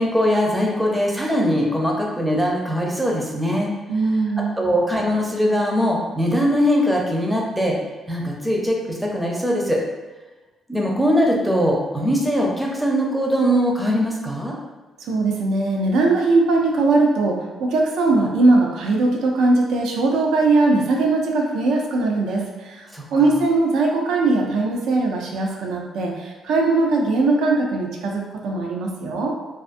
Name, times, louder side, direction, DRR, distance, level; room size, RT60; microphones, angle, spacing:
voice 1, 0.0-3.7 4.6-7.8 8.1-9.8 10.7-14.5 22.9-23.0, equal, 5° right, -2 dB, 0.5 m, -21 dB
voice 2, 3.9-4.6 15.0-29.3, right 3 dB, 85° right, 0 dB, 0.4 m, -20 dB
2.4 x 2.4 x 2.5 m, 1.2 s
cardioid pair, 110°, 0 cm